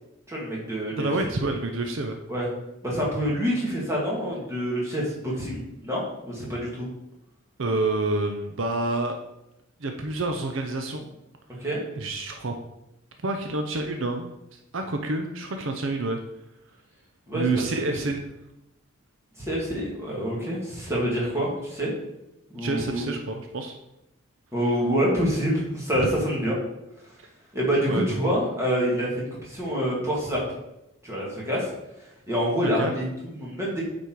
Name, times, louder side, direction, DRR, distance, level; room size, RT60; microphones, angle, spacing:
voice 1, 0.3-1.1 2.3-2.5 2.8-6.9 11.6-11.8 17.3-17.5 19.4-21.9 22.5-23.0 24.5-26.6 27.5-30.4 31.0-31.7 32.3-33.8, equal, 15° right, -5 dB, 2.1 m, -26 dB
voice 2, 1.0-2.2 7.6-9.2 9.8-11.1 12.0-12.5 13.2-16.2 17.3-18.2 22.6-23.7 26.0-26.1 27.9-28.2 32.6-32.9, right 2 dB, 65° right, 4 dB, 0.7 m, -28 dB
8.2 x 4.3 x 4.7 m, 0.88 s
head